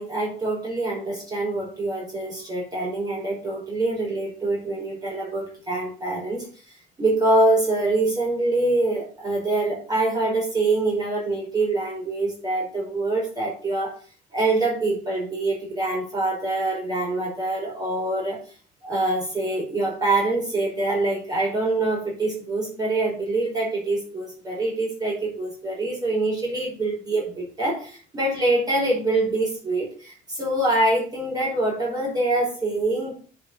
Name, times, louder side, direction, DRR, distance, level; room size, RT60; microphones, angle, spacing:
voice 1, 0.0-14.0 14.3-18.4 18.8-33.1, right 2 dB, 25° right, -4 dB, 5.5 m, -25 dB
9.9 x 4.6 x 6.4 m, 0.41 s
cardioid pair, 110°, 17 cm